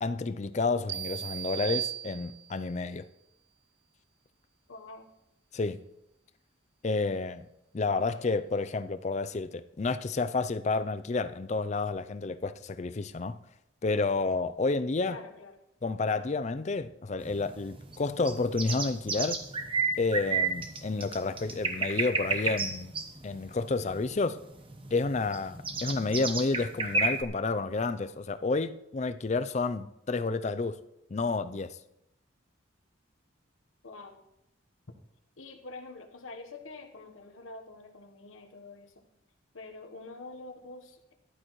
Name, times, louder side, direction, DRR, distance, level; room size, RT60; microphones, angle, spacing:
voice 1, 0.0-3.0 5.5-5.8 6.8-7.5 7.7-13.4 13.8-15.2 15.8-19.4 20.0-22.9 23.2-24.4 24.9-30.8 31.1-31.8, left 3 dB, 35° left, 0.4 m, -30 dB
sound 1, 0.9-2.7, right 12 dB, 55° right, 0.4 m, -36 dB
voice 2, 4.7-5.1 15.0-15.5 33.8-34.2 35.4-39.1 39.5-41.1, left 3 dB, 90° left, 1.2 m, -46 dB
sound 2, 17.2-27.2, right 4 dB, 25° right, 1.0 m, -32 dB
14.0 x 11.5 x 3.1 m
head